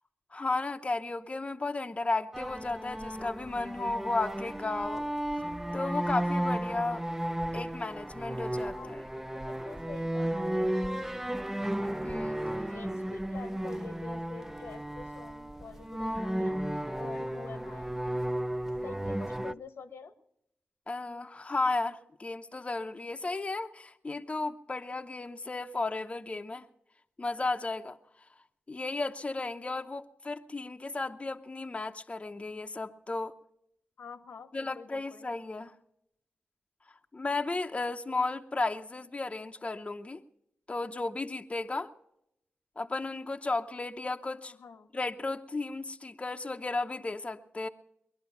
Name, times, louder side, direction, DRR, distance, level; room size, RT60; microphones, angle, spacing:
voice 1, 0.3-5.0 5.7-7.0 7.5-9.0 12.0-12.4 20.9-26.7 27.2-28.0 28.7-33.3 34.5-35.7 37.1-40.2 40.7-41.9 42.8-44.5 44.9-47.7, left 3 dB, 30° left, 6 dB, 0.7 m, -34 dB
sound 1, 2.3-19.5, right 1 dB, 10° right, 0.6 m, -34 dB
voice 2, 8.7-10.4 12.7-17.9 18.7-20.1 34.0-35.2 44.4-44.9, left 5 dB, 80° left, 9 dB, 1.2 m, -47 dB
21.0 x 11.0 x 5.8 m, 0.79 s
cardioid pair, 55°, 4 cm